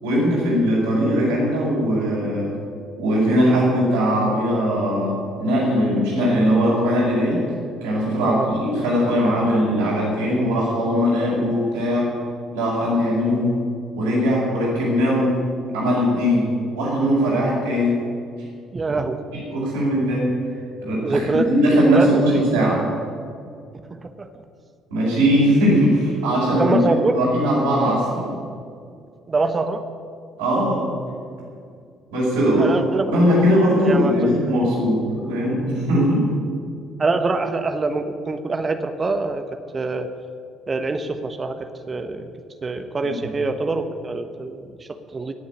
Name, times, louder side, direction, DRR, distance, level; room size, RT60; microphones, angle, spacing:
voice 1, 0.0-2.5 3.0-7.4 7.8-12.1 12.5-13.6 13.9-15.4 15.7-16.5 16.7-18.0 19.3-20.3 20.8-22.8 24.9-28.3 30.4-31.0 32.1-32.7 33.1-36.3 43.0-43.3, equal, 75° right, -9 dB, 5.1 m, -20 dB
voice 2, 18.7-19.2 21.0-22.4 24.0-24.3 26.6-27.2 29.3-29.8 32.6-33.2 33.8-34.1 37.0-39.4 39.7-40.1 40.7-41.6 41.9-42.3 42.6-45.3, right 3 dB, 30° right, 8 dB, 1.2 m, -24 dB
18.0 x 7.1 x 9.5 m, 2.2 s
figure-of-eight pair, 50°, 0 cm